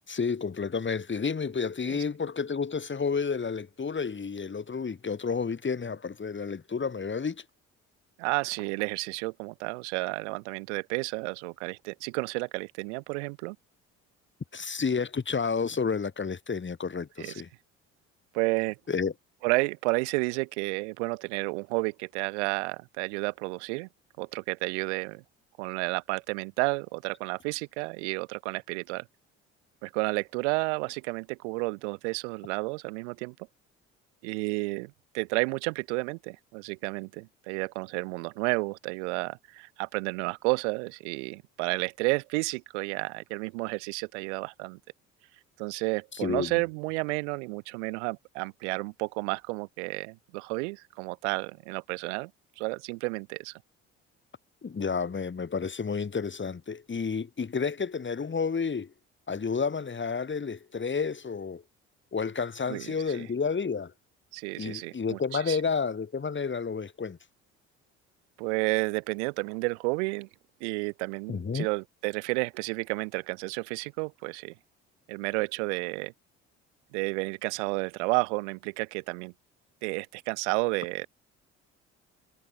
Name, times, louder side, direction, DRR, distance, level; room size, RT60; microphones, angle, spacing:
voice 1, 0.1-7.4 14.5-17.5 18.9-19.1 46.1-46.6 54.6-58.9 59.3-61.6 62.1-63.9 64.6-67.2 71.3-71.7, left 5 dB, 35° left, 6.7 m, -30 dB
voice 2, 8.2-13.6 17.2-17.4 18.3-18.8 19.4-23.9 24.2-25.2 25.6-29.0 29.8-33.3 34.2-44.8 45.6-52.3 52.6-53.6 62.7-63.3 64.3-65.6 68.4-70.3 70.6-74.5 75.1-76.1 76.9-79.3 79.8-81.1, right 30 dB, 80° right, 1.7 m, -31 dB
hypercardioid pair, 55°, 34 cm